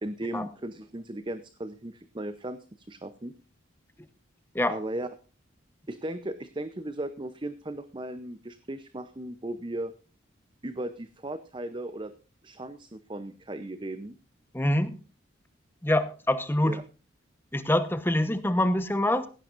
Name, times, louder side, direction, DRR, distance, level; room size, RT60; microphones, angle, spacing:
voice 1, 0.0-3.3 4.7-5.1 5.9-9.9 10.6-12.1 12.4-14.2 16.6-16.8, right 1 dB, 25° right, 11 dB, 0.8 m, -36 dB
voice 2, 14.5-14.9 15.8-16.7 17.5-19.3, left 1 dB, 10° left, 11 dB, 1.0 m, -25 dB
17.0 x 16.5 x 2.6 m, 0.35 s
head